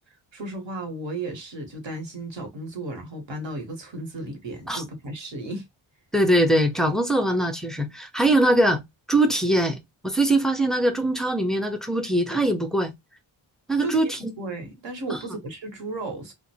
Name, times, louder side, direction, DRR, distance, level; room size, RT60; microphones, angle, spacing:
voice 1, 0.3-5.7 13.8-16.3, right 2 dB, 60° right, 1.1 m, -34 dB
voice 2, 6.1-8.8 9.1-12.9 13.7-14.3 15.1-15.2, right 1 dB, ahead, 0.4 m, -22 dB
2.5 x 2.1 x 2.7 m
cardioid pair, 80°, 49 cm